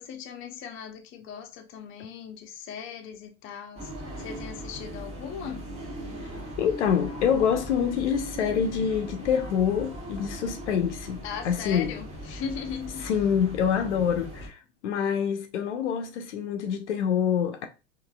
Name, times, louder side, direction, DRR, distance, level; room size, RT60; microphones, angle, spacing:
voice 1, 0.0-3.9 4.2-5.6 11.2-13.1, left 7 dB, 35° left, 0.8 m, -38 dB
sound 1, 3.8-14.5, equal, 20° right, 1.4 m, -39 dB
voice 2, 6.6-11.9 13.0-17.7, left 8 dB, 75° left, 0.7 m, -26 dB
4.0 x 2.7 x 2.3 m
hypercardioid pair, 100°, 35 cm